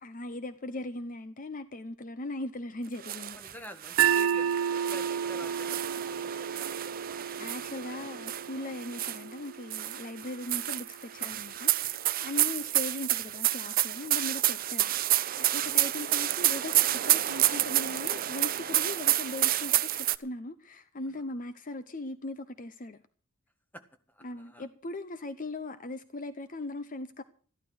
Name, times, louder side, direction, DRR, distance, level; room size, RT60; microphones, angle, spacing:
voice 1, 0.0-3.4 7.4-11.9 12.2-23.0 24.2-27.2, left 2 dB, 40° left, 0.8 m, -39 dB
sound 1, 3.0-3.5 3.8-9.3 9.7-20.2, right 14 dB, 45° right, 0.6 m, -29 dB
voice 2, 3.3-7.3 7.6-8.2 10.5-10.6 12.3-12.5 15.6-15.8 21.1-21.2 23.7-24.7, equal, 10° left, 1.6 m, -49 dB
sound 2, 4.0-10.1, right 8 dB, 85° right, 0.6 m, -31 dB
14.0 x 12.5 x 6.3 m
head